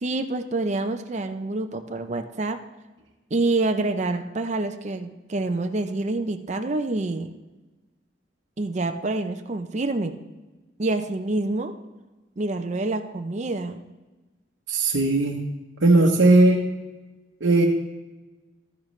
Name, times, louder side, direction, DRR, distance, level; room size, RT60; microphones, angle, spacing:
voice 1, 0.0-2.6 3.3-7.3 8.6-10.2 10.8-11.7 12.4-13.8 16.2-16.3, right 2 dB, 40° right, 6 dB, 0.6 m, -27 dB
voice 2, 14.7-15.4 15.8-16.7 17.4-17.6, right 2 dB, 80° right, -2 dB, 1.0 m, -18 dB
12.5 x 10.0 x 3.2 m, 1.1 s
head